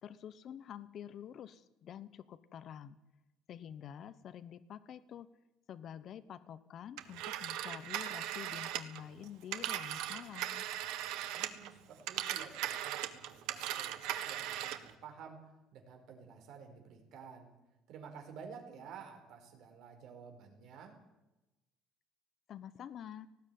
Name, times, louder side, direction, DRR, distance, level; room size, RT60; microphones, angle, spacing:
voice 1, 0.0-3.0 3.5-5.3 5.7-10.6 22.5-23.3, left 9 dB, 40° left, 12 dB, 0.9 m, -48 dB
Telephone, 7.0-11.7 12.0-14.9, right 12 dB, 85° right, 1.5 m, -39 dB
voice 2, 11.3-17.5 17.9-21.0, right 6 dB, 55° right, 4 dB, 4.8 m, -52 dB
19.0 x 16.0 x 9.4 m, 1.0 s
cardioid pair, 160°, 0 cm